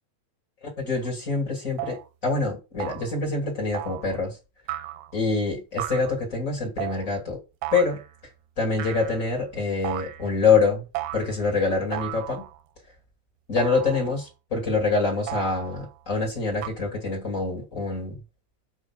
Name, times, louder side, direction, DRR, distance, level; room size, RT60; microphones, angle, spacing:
voice 1, 0.6-2.0 2.2-4.4 5.1-7.4 7.7-8.0 8.6-10.8 11.1-12.4 13.5-18.2, left 4 dB, 25° left, 2.1 m, -25 dB
sound 1, 1.0-1.1 1.8-2.1 2.8-3.2 3.7-4.2 4.7-5.2 5.8-6.1 6.8-7.1 7.6-8.1 8.8-9.4 9.8-10.3 10.9-11.4 11.9-12.6 13.6-14.2 15.3-16.0 16.6-16.7, right 15 dB, 80° right, 2.4 m, -35 dB
7.1 x 5.1 x 6.0 m
omnidirectional pair, 5.1 m